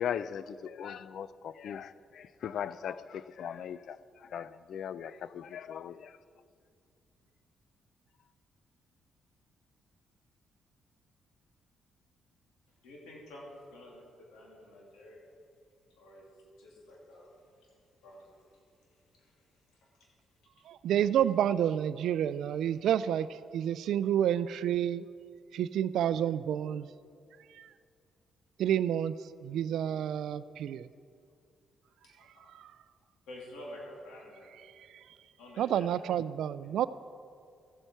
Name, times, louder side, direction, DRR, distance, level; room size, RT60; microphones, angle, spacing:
voice 1, 0.0-6.2, left 8 dB, 70° left, 16 dB, 0.4 m, -39 dB
voice 2, 12.8-15.2 15.9-16.2 16.6-19.3 19.8-19.9 20.6-20.7 32.0-32.3 33.3-34.4 35.4-35.8, left 1 dB, 90° left, -3 dB, 2.8 m, -50 dB
voice 3, 20.7-23.3 23.5-25.0 25.5-26.9 28.6-29.1 29.4-30.9 35.6-36.9, right 10 dB, 80° right, 16 dB, 0.3 m, -29 dB
14.5 x 8.1 x 4.5 m, 2.3 s
supercardioid pair, 70°, 0 cm